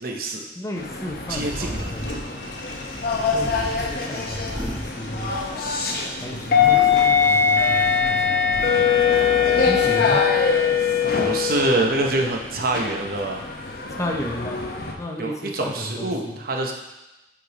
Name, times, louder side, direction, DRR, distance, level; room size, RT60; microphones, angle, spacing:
voice 1, 0.0-0.4 1.3-1.9 11.2-13.4 15.2-16.7, right 2 dB, 55° right, 1 dB, 0.8 m, -25 dB
voice 2, 0.6-2.1 3.3-5.4 6.2-8.9 9.7-10.3 13.9-14.7 15.0-16.4, left 1 dB, 15° left, 1 dB, 0.6 m, -33 dB
sound 1, 0.8-14.9, left 6 dB, 55° left, 0.8 m, -22 dB
sound 2, 1.1-5.9 6.3-8.7, equal, 10° right, 1.2 m, -37 dB
Toilet flush, 2.0-8.0, left 1 dB, 85° left, 1.0 m, -40 dB
6.9 x 3.8 x 4.9 m, 1.0 s
head